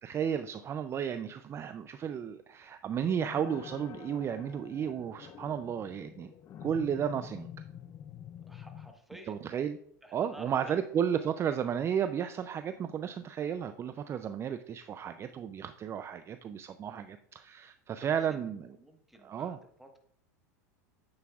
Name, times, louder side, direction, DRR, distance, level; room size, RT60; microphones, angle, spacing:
voice 1, 0.0-6.3 6.6-7.5 9.3-9.8 10.1-18.7 19.2-19.6, right 8 dB, 30° right, 10 dB, 0.4 m, -33 dB
sound 1, 3.0-8.9, left 9 dB, 35° left, 0.5 m, -47 dB
voice 2, 8.5-9.4 10.0-10.8 11.1-11.6 18.0-20.0, right 1 dB, ahead, 3 dB, 1.3 m, -52 dB
9.4 x 8.2 x 2.4 m, 0.69 s
hypercardioid pair, 100°, 9 cm